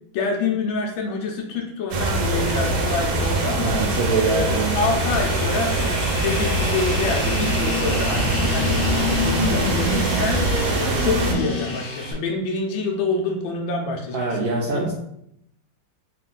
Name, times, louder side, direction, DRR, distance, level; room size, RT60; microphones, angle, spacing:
voice 1, 0.1-3.7 4.2-8.8 9.2-10.5 11.0-14.9, left 3 dB, 80° left, 1 dB, 1.4 m, -27 dB
sound 1, 1.9-11.3, right 2 dB, 90° right, 1.5 m, -23 dB
sound 2, 2.0-12.1, left 3 dB, 60° left, 0.9 m, -29 dB
voice 2, 3.6-4.8 14.1-14.9, right 3 dB, 75° right, -2 dB, 0.9 m, -24 dB
3.5 x 2.5 x 3.7 m, 0.76 s
omnidirectional pair, 2.2 m